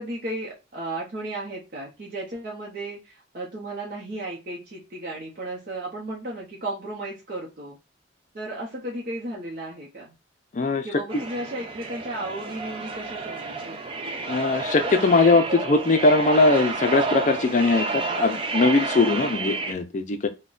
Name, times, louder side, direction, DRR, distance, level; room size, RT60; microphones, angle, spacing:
voice 1, 0.0-7.8 8.3-10.1 10.8-14.0, right 1 dB, 50° right, -4 dB, 0.7 m, -34 dB
voice 2, 10.5-10.9 14.3-20.3, left 3 dB, 40° left, 8 dB, 0.4 m, -20 dB
sound 1, 11.1-19.7, right 3 dB, 30° right, 0.4 m, -30 dB
3.8 x 2.2 x 2.4 m, 0.27 s
head